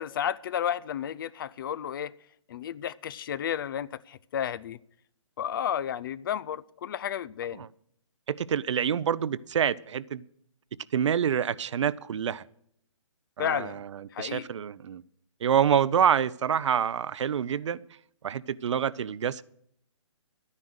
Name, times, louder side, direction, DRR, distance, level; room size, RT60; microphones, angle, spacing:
voice 1, 0.0-2.1 2.5-4.8 5.4-7.7 13.4-13.8 14.1-14.5, left 9 dB, 40° left, 0.4 m, -32 dB
voice 2, 8.3-10.2 10.9-12.4 13.4-15.0 15.4-17.8 18.2-19.4, right 8 dB, 60° right, 0.6 m, -27 dB
12.0 x 9.7 x 6.3 m
hypercardioid pair, 145°, 17 cm